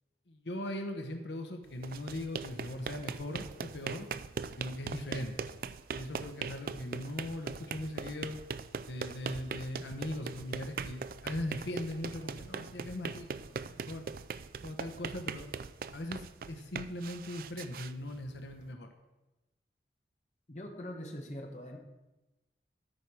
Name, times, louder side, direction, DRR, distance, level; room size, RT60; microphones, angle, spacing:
voice 1, 0.3-4.1 4.6-5.4 5.9-8.4 8.8-14.0 14.6-15.5 15.9-18.9, left 1 dB, 85° left, 5 dB, 1.1 m, -40 dB
sound 1, 1.7-18.7, right 5 dB, 50° right, 0.3 m, -41 dB
voice 2, 20.5-21.8, equal, 40° left, 2 dB, 1.3 m, -42 dB
13.0 x 4.9 x 6.1 m, 1.0 s
head